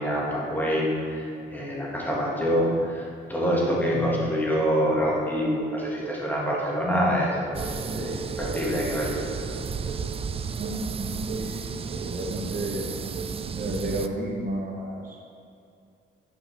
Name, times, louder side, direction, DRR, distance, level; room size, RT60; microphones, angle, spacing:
voice 1, 0.0-8.1 8.4-9.2, equal, 10° left, -5 dB, 2.0 m, -26 dB
sound 1, 5.3-6.8 7.3-10.1 10.6-10.8 11.3-11.6 11.9-12.2 12.5-12.8 13.1-13.4, right 6 dB, 75° right, 1.5 m, -38 dB
sound 2, 7.5-14.1, right 5 dB, 30° right, 0.4 m, -33 dB
voice 2, 10.6-12.9 13.5-15.2, right 1 dB, 45° right, -1 dB, 1.2 m, -32 dB
8.5 x 5.6 x 4.5 m, 2.5 s
cardioid pair, 90°, 20 cm